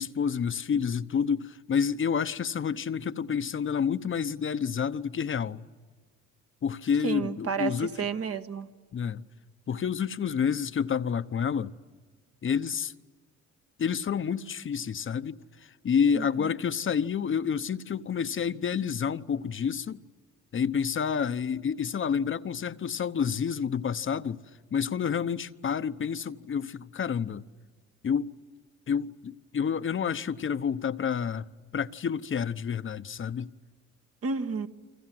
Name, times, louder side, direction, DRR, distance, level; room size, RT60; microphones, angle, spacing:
voice 1, 0.0-5.6 6.6-7.9 8.9-9.2 9.7-11.7 12.4-12.9 13.8-20.0 20.5-24.4 24.7-27.5 28.0-28.3 28.9-31.5 31.7-33.5, left 7 dB, 40° left, 1.0 m, -29 dB
voice 2, 7.0-8.7 16.1-16.5 34.2-34.7, right 5 dB, 50° right, 1.6 m, -31 dB
29.5 x 25.0 x 7.7 m
cardioid pair, 90°, 30 cm